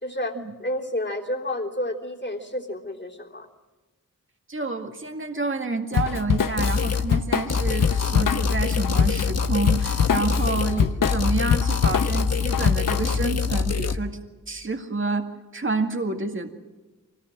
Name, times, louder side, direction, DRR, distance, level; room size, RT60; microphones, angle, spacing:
voice 1, 0.0-3.5, left 1 dB, 35° left, 1 dB, 3.4 m, -30 dB
voice 2, 4.5-14.2 14.5-16.5, right 3 dB, 35° right, 5 dB, 2.1 m, -29 dB
Drum kit / Drum, 5.9-13.2, left 7 dB, 70° left, 0.9 m, -25 dB
sound 1, 6.6-7.1 7.5-10.8 11.0-14.0, left 5 dB, 50° left, 1.2 m, -25 dB
24.5 x 19.5 x 7.7 m, 1.2 s
wide cardioid pair, 70°, 34 cm